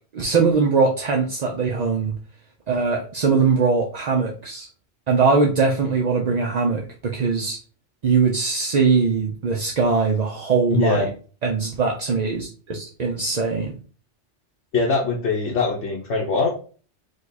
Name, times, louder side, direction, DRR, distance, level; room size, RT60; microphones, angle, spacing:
voice 1, 0.1-2.1 2.7-4.7 5.1-7.6 8.0-11.1 11.4-13.7, right 4 dB, 45° right, 2 dB, 0.6 m, -21 dB
voice 2, 10.7-11.1 14.7-16.5, left 4 dB, 75° left, -2 dB, 1.1 m, -22 dB
5.1 x 2.4 x 4.0 m, 0.39 s
omnidirectional pair, 1.2 m